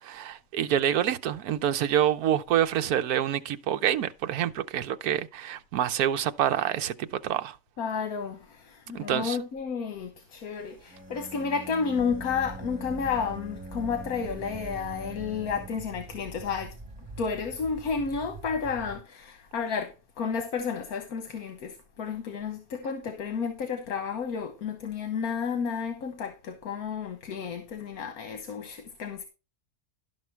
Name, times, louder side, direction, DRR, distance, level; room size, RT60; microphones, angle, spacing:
voice 1, 0.0-7.6 8.9-9.4, right 10 dB, 80° right, 1.3 m, -27 dB
voice 2, 7.8-16.7 17.2-29.3, left 6 dB, 75° left, 1.5 m, -32 dB
sound 1, 10.5-19.0, right 3 dB, 40° right, 0.4 m, -45 dB
Bowed string instrument, 10.9-16.0, right 2 dB, 5° right, 1.3 m, -44 dB
12.0 x 6.5 x 4.5 m
omnidirectional pair, 1.6 m